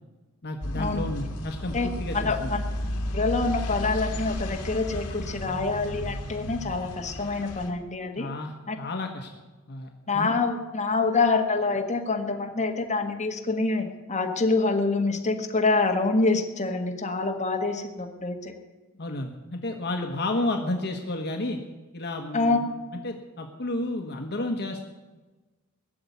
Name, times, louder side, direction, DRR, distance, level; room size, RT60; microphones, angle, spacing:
voice 1, 0.4-2.6 8.2-9.3 9.7-10.3 19.0-21.6 21.9-22.7 23.0-24.9, left 2 dB, 50° left, 3 dB, 1.3 m, -31 dB
sound 1, 0.6-7.7, left 1 dB, 70° left, 2.3 m, -33 dB
voice 2, 2.1-2.6 3.1-8.3 8.7-8.8 10.1-18.5 22.3-22.6, left 3 dB, 30° left, 2 dB, 1.6 m, -26 dB
19.0 x 7.0 x 9.4 m, 1.2 s
head